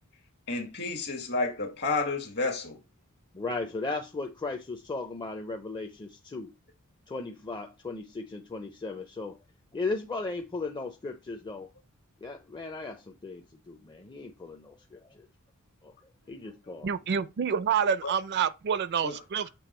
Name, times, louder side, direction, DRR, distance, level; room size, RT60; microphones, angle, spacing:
voice 1, 0.5-2.8 16.2-16.3 18.0-18.1 19.0-19.2, left 3 dB, 50° left, 1.7 m, -31 dB
voice 2, 3.3-6.5 7.1-9.4 9.7-11.7 12.2-15.3 15.8-15.9 16.3-16.9, left 3 dB, 20° left, 0.5 m, -36 dB
voice 3, 16.8-19.5, right 7 dB, 50° right, 0.4 m, -28 dB
7.0 x 3.2 x 4.3 m
head